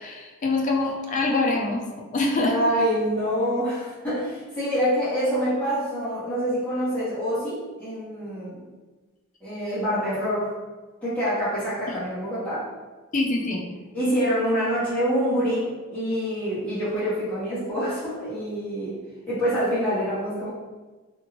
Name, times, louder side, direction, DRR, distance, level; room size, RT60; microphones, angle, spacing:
voice 1, 0.0-1.8 2.1-2.5 11.9-12.0 13.1-13.7, left 2 dB, 35° left, 0 dB, 0.4 m, -24 dB
voice 2, 2.4-8.6 9.4-10.5 11.0-12.7 13.9-18.9 19.3-20.5, equal, 5° left, -12 dB, 1.3 m, -26 dB
2.8 x 2.6 x 2.9 m, 1.3 s
head